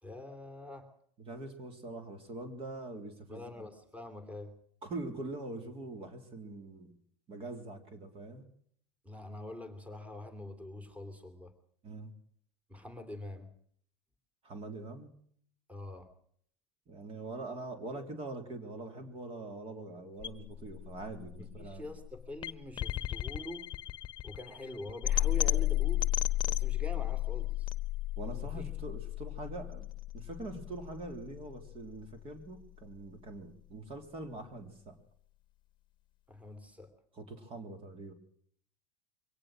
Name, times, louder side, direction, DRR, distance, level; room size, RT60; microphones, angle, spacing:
voice 1, 0.0-0.9 3.3-4.5 9.0-11.5 12.7-13.5 15.7-16.1 21.4-23.7 24.2-26.0 26.5-27.7 28.4-28.7 36.3-36.9, left 1 dB, 10° right, 8 dB, 3.1 m, -45 dB
voice 2, 1.2-3.7 4.8-6.9 7.3-8.4 11.8-12.1 14.4-15.1 16.9-21.9 28.2-29.9 30.1-35.0 37.1-38.1, right 2 dB, 40° right, 8 dB, 3.4 m, -43 dB
sound 1, 20.2-32.2, left 15 dB, 30° left, 1.1 m, -34 dB
23.5 x 18.0 x 6.3 m, 0.62 s
hypercardioid pair, 100°, 15 cm